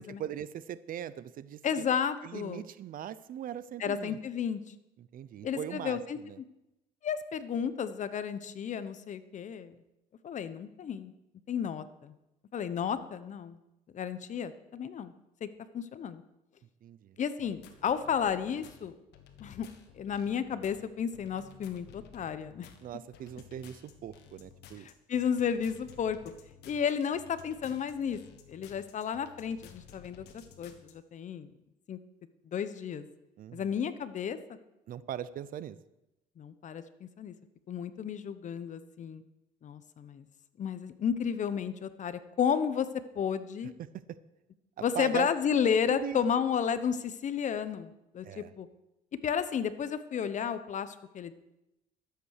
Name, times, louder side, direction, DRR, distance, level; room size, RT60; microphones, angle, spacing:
voice 1, 0.0-1.8 2.2-4.2 5.0-6.4 16.8-17.2 22.8-24.9 33.4-33.7 34.9-35.8 43.8-44.0 44.8-45.3 45.9-46.2 48.2-48.5, right 10 dB, 55° right, 17 dB, 0.6 m, -40 dB
voice 2, 1.6-2.6 3.8-4.6 5.4-6.2 7.0-9.7 10.2-11.1 11.5-12.1 12.5-13.6 13.9-15.1 15.4-15.5 15.7-16.2 17.2-18.9 19.4-19.7 19.9-22.7 24.8-26.2 26.7-28.2 28.5-31.5 31.9-32.0 32.5-33.0 33.5-34.4 36.4-37.3 37.7-39.2 39.6-40.3 40.6-42.9 43.1-43.7 44.8-48.7 49.2-51.3, left 7 dB, 45° left, 13 dB, 0.9 m, -32 dB
sound 1, 17.4-30.9, left 8 dB, 85° left, 1.6 m, -55 dB
12.5 x 8.2 x 6.6 m, 0.91 s
cardioid pair, 110°, 17 cm